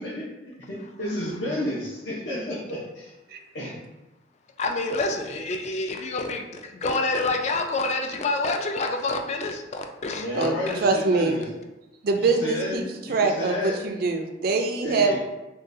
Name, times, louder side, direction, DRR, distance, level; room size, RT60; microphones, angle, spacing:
voice 1, 0.0-3.1 3.5-3.7 10.1-11.4 12.2-13.8 14.8-15.2, left 1 dB, 70° left, -8 dB, 0.7 m, -31 dB
voice 2, 4.6-10.3, left 3 dB, 35° left, 4 dB, 0.3 m, -27 dB
voice 3, 10.3-11.4 12.0-15.2, right 3 dB, 50° right, 4 dB, 0.4 m, -24 dB
3.7 x 2.3 x 2.6 m, 1.1 s
head